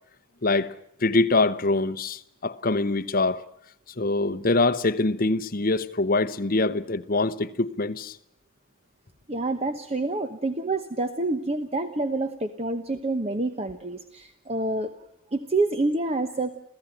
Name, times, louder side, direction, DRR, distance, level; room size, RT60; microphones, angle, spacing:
voice 1, 0.4-0.7 1.0-3.4 4.0-8.2, left 2 dB, 40° left, 0.8 m, -24 dB
voice 2, 9.3-14.9 15.3-16.6, right 2 dB, 25° right, 1.0 m, -27 dB
28.5 x 16.0 x 9.0 m
head